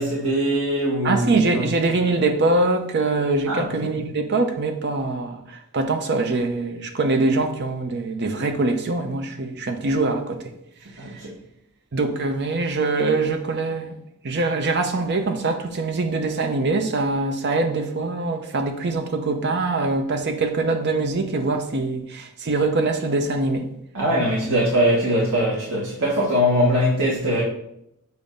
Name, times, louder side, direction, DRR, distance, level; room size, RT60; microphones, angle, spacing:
voice 1, 0.0-1.7 3.5-3.9 11.0-11.4 23.9-27.4, equal, 85° right, 1.3 m, -22 dB
voice 2, 1.0-10.4 11.9-13.9 14.2-23.6, right 3 dB, 55° right, 0.7 m, -23 dB
7.0 x 2.7 x 5.1 m
head